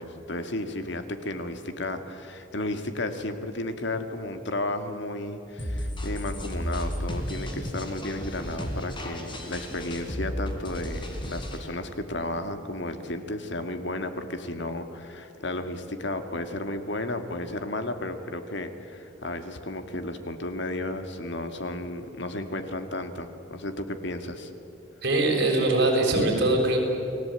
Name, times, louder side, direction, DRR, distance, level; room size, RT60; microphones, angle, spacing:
voice 1, 0.0-24.5, left 1 dB, 65° left, 8 dB, 2.1 m, -33 dB
sound 1, 5.6-11.6, equal, 25° left, 3.7 m, -33 dB
voice 2, 25.0-26.8, right 2 dB, 55° right, 0 dB, 7.0 m, -22 dB
30.0 x 20.5 x 9.0 m, 2.8 s
head